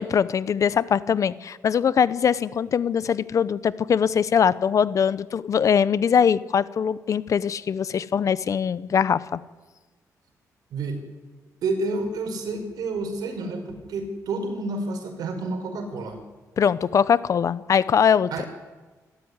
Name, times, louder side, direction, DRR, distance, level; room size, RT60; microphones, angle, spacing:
voice 1, 0.0-9.4 16.6-18.3, left 7 dB, 55° left, 17 dB, 0.9 m, -22 dB
voice 2, 10.7-11.0 11.6-16.2 18.3-18.5, right 3 dB, 85° right, 5 dB, 5.1 m, -29 dB
26.5 x 13.0 x 9.7 m, 1.3 s
cardioid pair, 95°, 6 cm